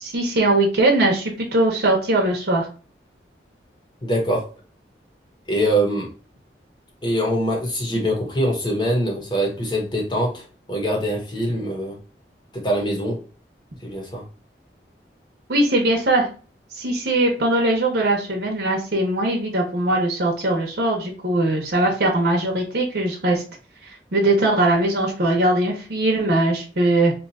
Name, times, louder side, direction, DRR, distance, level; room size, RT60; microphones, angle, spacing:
voice 1, 0.0-2.7 15.5-16.3 16.8-23.4 24.1-27.1, right 2 dB, 70° right, -1 dB, 0.8 m, -20 dB
voice 2, 4.0-4.4 5.5-6.1 7.0-12.0 12.5-13.2 13.8-14.2, equal, 25° left, 0 dB, 0.9 m, -23 dB
2.8 x 2.4 x 3.9 m, 0.36 s
head